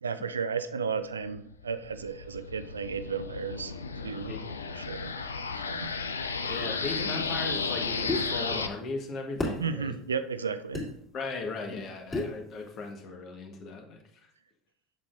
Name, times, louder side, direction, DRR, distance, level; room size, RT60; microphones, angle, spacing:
voice 1, 0.0-3.7 4.0-4.4 4.7-5.1 5.5-5.9 9.6-10.9, right 5 dB, 80° right, 12 dB, 0.4 m, -34 dB
sound 1, 1.4-8.7, left 4 dB, 80° left, 0.4 m, -34 dB
voice 2, 6.4-9.9 11.1-14.0, left 3 dB, 45° left, 3 dB, 1.4 m, -37 dB
sound 2, 8.1-8.3 9.4-9.6 10.7-10.9 12.1-12.3, left 2 dB, 20° left, 2.6 m, -29 dB
7.4 x 6.6 x 2.5 m, 0.69 s
figure-of-eight pair, 75°, 0 cm